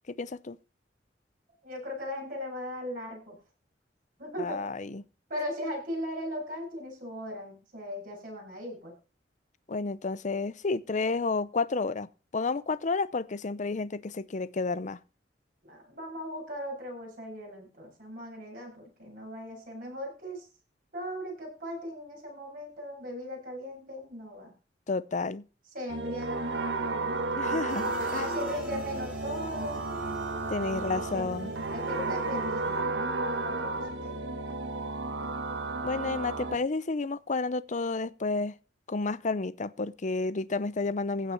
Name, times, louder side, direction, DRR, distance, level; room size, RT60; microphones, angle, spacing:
voice 1, 0.2-0.6 4.4-5.0 9.7-12.1 12.3-15.0 24.9-25.4 27.3-28.3 30.5-31.5 35.8-38.5 38.9-41.3, left 3 dB, 45° left, 0.6 m, -31 dB
voice 2, 1.6-3.4 4.2-4.7 5.3-8.9 15.6-20.5 20.9-24.5 25.7-29.8 30.7-31.3 31.6-34.3, equal, 50° right, 8.0 m, -38 dB
sound 1, 25.9-36.6, right 3 dB, 80° right, 1.6 m, -33 dB
sound 2, 27.7-32.8, right 2 dB, 10° right, 3.7 m, -43 dB
16.0 x 5.8 x 5.9 m
head